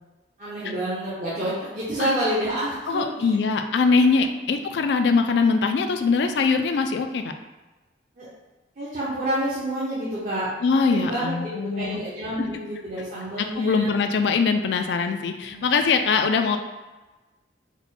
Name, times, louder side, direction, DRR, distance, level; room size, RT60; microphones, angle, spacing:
voice 1, 0.4-3.4 3.8-4.3 8.2-8.3 8.8-13.9 15.5-15.7, right 1 dB, 45° right, -10 dB, 0.9 m, -29 dB
voice 2, 2.9-7.3 10.6-12.0 13.4-16.6, left 4 dB, 75° left, 6 dB, 0.3 m, -22 dB
4.3 x 2.2 x 4.1 m, 1.2 s
head